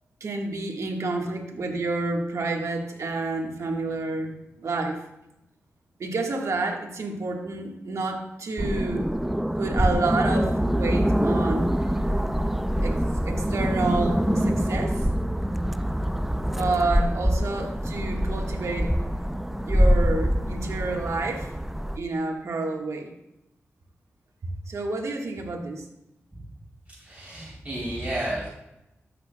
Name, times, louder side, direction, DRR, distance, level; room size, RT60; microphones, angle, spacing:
voice 1, 0.2-4.4 4.6-5.0 6.0-9.1 9.6-12.0 12.8-15.0 16.4-18.9 19.6-21.5 22.0-23.1 24.7-25.9, right 3 dB, 75° right, 2 dB, 1.4 m, -29 dB
sound 1, 8.6-22.0, equal, 5° right, 0.4 m, -25 dB
voice 2, 26.9-28.5, right 1 dB, 25° right, -7 dB, 3.1 m, -32 dB
13.0 x 6.8 x 2.2 m, 0.87 s
cardioid pair, 45°, 5 cm